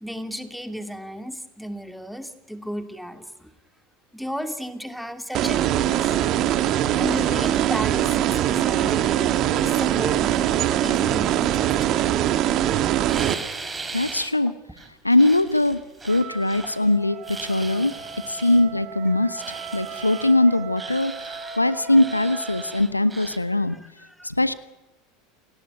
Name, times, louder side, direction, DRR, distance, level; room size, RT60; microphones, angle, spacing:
voice 1, 0.0-3.5 4.1-6.1 7.0-12.2 17.4-17.9 19.3-20.3 20.7-20.8 21.4-22.3 22.6-22.9 23.6-24.3, equal, ahead, 8 dB, 2.4 m, -35 dB
sound 1, 5.3-13.3, right 12 dB, 45° right, 1.9 m, -22 dB
sound 2, 13.1-14.3 14.8-16.9 17.2-18.6 19.4-20.3 20.8-21.6 21.9-23.4, right 3 dB, 15° right, 4.1 m, -38 dB
voice 2, 13.9-14.5 15.0-15.8 16.0-17.9 18.3-19.4 19.7-21.1 21.6-23.8 24.2-24.5, left 1 dB, 90° left, 16 dB, 1.0 m, -21 dB
Wind instrument woodwind instrument, 16.1-22.9, right 6 dB, 60° right, 2.5 m, -39 dB
29.0 x 18.5 x 9.2 m, 1.0 s
figure-of-eight pair, 75°, 0 cm